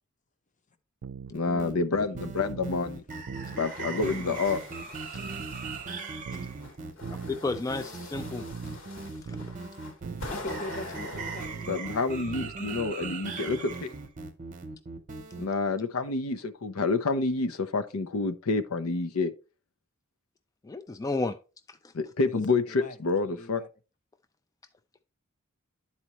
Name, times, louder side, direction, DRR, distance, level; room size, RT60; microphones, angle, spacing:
sound 1, 1.0-1.3 2.1-2.9 3.3-3.6 4.0-4.4 5.1-5.9 6.3-6.6 7.0-7.4 8.1-8.8 9.3-9.6 10.0-10.3 11.1-11.8 12.3-12.6, right 6 dB, 80° right, 0.4 m, -40 dB
voice 1, 1.3-3.0 3.6-4.6 11.7-13.9 15.4-19.3 21.9-23.6, left 3 dB, 85° left, 0.7 m, -28 dB
sound 2, 1.3-15.5, right 4 dB, 35° right, 0.8 m, -39 dB
sound 3, 3.4-6.0 6.6-11.5, left 2 dB, 65° left, 1.3 m, -43 dB
voice 2, 3.5-4.4 10.3-11.9 13.1-13.2 22.3-23.0 23.2-23.7, left 2 dB, 35° left, 0.8 m, -42 dB
voice 3, 7.1-8.4 9.3-9.4 20.6-21.4, left 3 dB, 15° left, 0.3 m, -32 dB
11.0 x 4.3 x 3.0 m
head